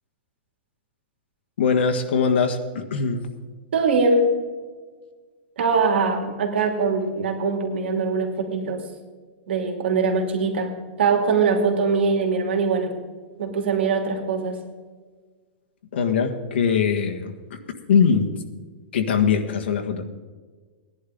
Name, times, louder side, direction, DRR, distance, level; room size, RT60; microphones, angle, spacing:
voice 1, 1.6-3.2 15.9-17.6 17.9-18.3 18.9-20.0, left 6 dB, 85° left, 4 dB, 1.7 m, -21 dB
voice 2, 3.7-4.3 5.6-8.8 9.5-10.7 11.0-12.9 13.4-14.6, right 4 dB, 85° right, 3 dB, 2.9 m, -22 dB
17.0 x 11.0 x 3.8 m, 1.4 s
supercardioid pair, 175°, 6 cm